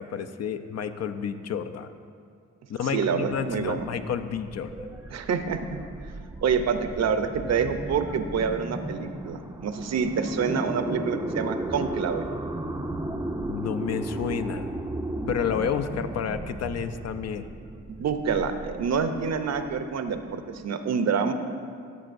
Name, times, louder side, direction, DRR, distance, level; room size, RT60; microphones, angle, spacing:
voice 1, 0.0-1.9 2.7-4.9 13.5-14.7 15.3-17.5, left 7 dB, 55° left, 10 dB, 0.5 m, -30 dB
sound 1, 2.8-20.6, right 1 dB, 10° right, 0.5 m, -35 dB
voice 2, 2.9-3.9 5.1-5.8 6.4-12.2 18.0-21.3, right 6 dB, 55° right, 8 dB, 0.7 m, -27 dB
13.5 x 6.6 x 2.6 m, 2.2 s
supercardioid pair, 60°, 31 cm